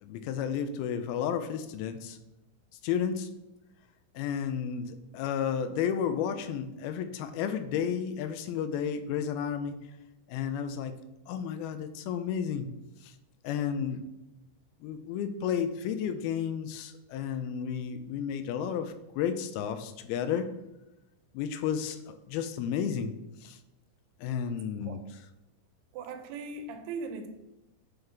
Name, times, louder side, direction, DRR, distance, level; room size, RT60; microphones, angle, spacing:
voice 1, 0.0-2.2 2.8-3.3 4.2-9.7 10.3-11.0 11.3-12.7 13.0-13.1 13.4-14.0 14.8-20.5 21.3-23.1 23.4-23.6 24.2-25.2, left 8 dB, 85° left, 9 dB, 2.4 m, -32 dB
voice 2, 25.9-27.3, right 4 dB, 85° right, 6 dB, 2.9 m, -38 dB
8.9 x 3.5 x 5.5 m, 0.94 s
omnidirectional pair, 4.5 m